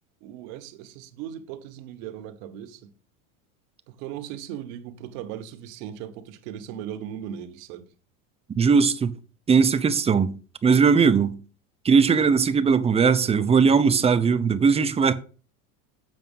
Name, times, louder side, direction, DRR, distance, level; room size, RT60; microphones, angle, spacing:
voice 1, 0.2-2.9 3.9-7.8, right 10 dB, 65° right, 1.3 m, -38 dB
voice 2, 8.6-9.1 9.5-10.3 10.6-11.3 11.8-15.1, right 5 dB, 15° right, 0.5 m, -19 dB
7.7 x 4.7 x 5.5 m
supercardioid pair, 120°, 43 cm